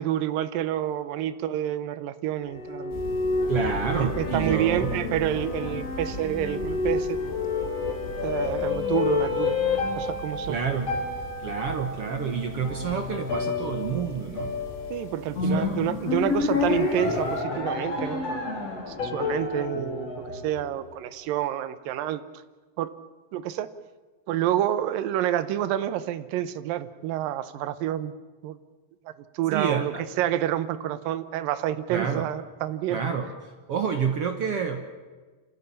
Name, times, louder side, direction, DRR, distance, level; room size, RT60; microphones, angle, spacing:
voice 1, 0.0-3.0 3.9-7.2 8.2-9.6 10.0-10.6 14.9-18.6 18.9-22.2 22.8-22.9 23.3-23.7 24.3-28.1 28.4-28.6 29.1-33.0, right 12 dB, 80° right, 13 dB, 2.5 m, -28 dB
aria.remix, 2.4-21.0, left 4 dB, 45° left, 5.1 m, -29 dB
sound 1, 2.9-17.4, left 1 dB, 20° left, 2.3 m, -40 dB
voice 2, 3.5-4.9 10.5-10.9 11.4-14.6 15.4-15.9 29.5-30.0 31.9-32.3 32.9-34.9, right 6 dB, 60° right, 6 dB, 1.6 m, -29 dB
26.5 x 15.0 x 8.7 m, 1.4 s
omnidirectional pair, 4.2 m